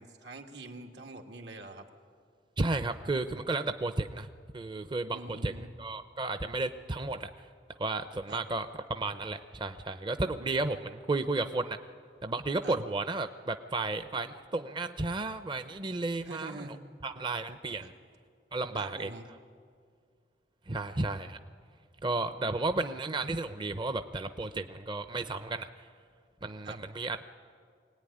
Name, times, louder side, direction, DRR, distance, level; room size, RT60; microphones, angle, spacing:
voice 1, 0.0-1.9 5.1-5.8 8.3-8.4 12.6-12.8 16.2-16.8 17.8-17.9 18.8-19.3 26.6-26.8, right 2 dB, 85° right, 3 dB, 2.2 m, -44 dB
voice 2, 2.6-4.3 4.5-5.5 5.8-7.3 7.8-11.8 12.2-16.7 17.0-17.9 18.5-19.1 20.7-21.4 22.0-25.7 26.4-27.2, right 2 dB, 25° right, 9 dB, 0.6 m, -33 dB
24.0 x 18.0 x 10.0 m, 2.1 s
head